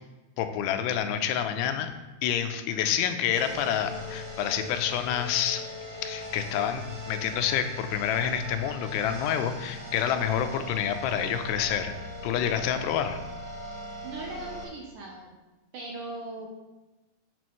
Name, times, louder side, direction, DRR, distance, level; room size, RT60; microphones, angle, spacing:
voice 1, 0.4-1.9 2.2-5.6 6.0-11.9 12.2-13.2, left 9 dB, 90° left, 8 dB, 2.8 m, -28 dB
sound 1, 3.3-14.6, left 2 dB, 10° right, 1.3 m, -39 dB
voice 2, 14.0-15.3 15.7-16.5, right 2 dB, 70° right, -1 dB, 2.1 m, -39 dB
10.5 x 7.1 x 3.1 m, 1.1 s
omnidirectional pair, 4.7 m